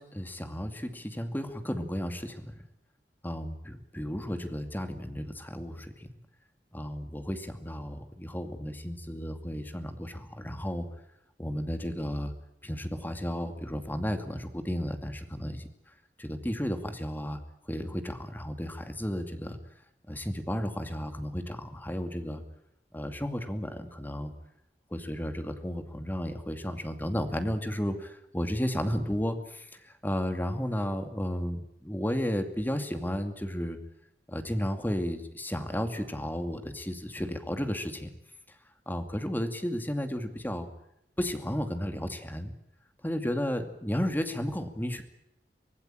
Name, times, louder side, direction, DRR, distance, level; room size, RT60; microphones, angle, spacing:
voice 1, 0.0-2.5 3.2-6.1 6.7-10.9 11.4-12.3 12.6-15.7 16.2-17.4 17.7-19.6 20.1-22.4 22.9-24.3 24.9-33.8 34.3-38.1 38.9-40.7 41.2-42.5 43.0-45.0, equal, 10° left, 7 dB, 2.4 m, -33 dB
25.0 x 17.5 x 9.1 m, 0.81 s
head